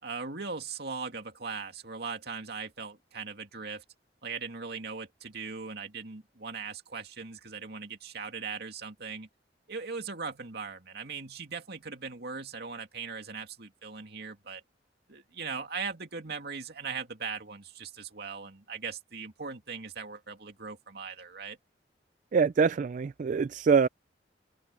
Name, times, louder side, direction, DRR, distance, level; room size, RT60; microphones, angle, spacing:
voice 1, 0.0-3.8 4.2-9.3 9.7-14.6 15.1-21.6, right 5 dB, 60° right, 2.5 m, -39 dB
voice 2, 22.3-23.9, right 5 dB, 45° right, 0.3 m, -24 dB
open air
head